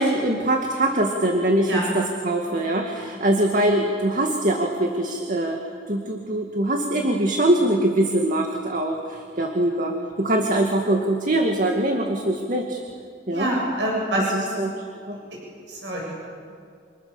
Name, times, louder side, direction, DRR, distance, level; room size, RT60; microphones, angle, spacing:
voice 1, 0.0-5.6 5.9-12.8 13.3-13.5 14.3-14.7 15.1-15.2, right 1 dB, 50° right, 2 dB, 2.2 m, -23 dB
voice 2, 13.3-14.5 15.7-16.1, right 1 dB, 85° right, -3 dB, 8.0 m, -26 dB
29.5 x 28.0 x 7.1 m, 2.3 s
head